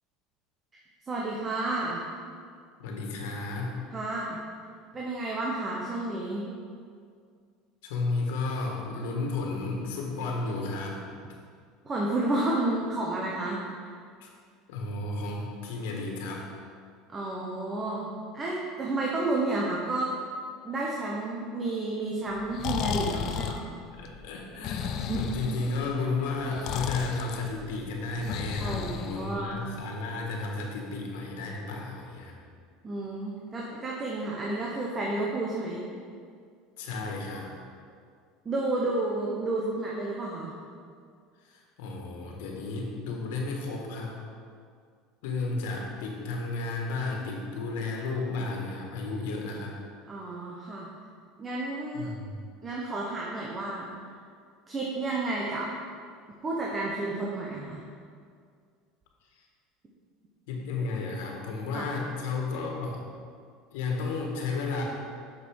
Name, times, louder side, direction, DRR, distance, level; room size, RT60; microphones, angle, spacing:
voice 1, 1.0-2.0 3.9-4.4 4.9-6.5 11.8-13.9 17.1-18.1 18.3-20.1 20.6-23.8 25.1-25.3 28.6-29.6 32.8-35.9 38.4-40.5 50.1-50.9 51.4-52.1 52.6-53.9 54.7-55.7 56.4-57.8 61.7-61.9, right 2 dB, 25° right, -3 dB, 1.1 m, -31 dB
voice 2, 2.8-3.8 7.8-11.0 14.2-14.3 14.7-16.5 23.9-32.4 36.8-37.6 41.4-44.1 45.2-49.8 51.9-52.4 60.5-63.0 63.7-64.8, left 3 dB, 80° left, 0 dB, 1.7 m, -33 dB
Breathing, 22.3-29.7, left 8 dB, 55° left, 0.5 m, -34 dB
6.7 x 6.7 x 4.9 m, 2.2 s
supercardioid pair, 120°, 0 cm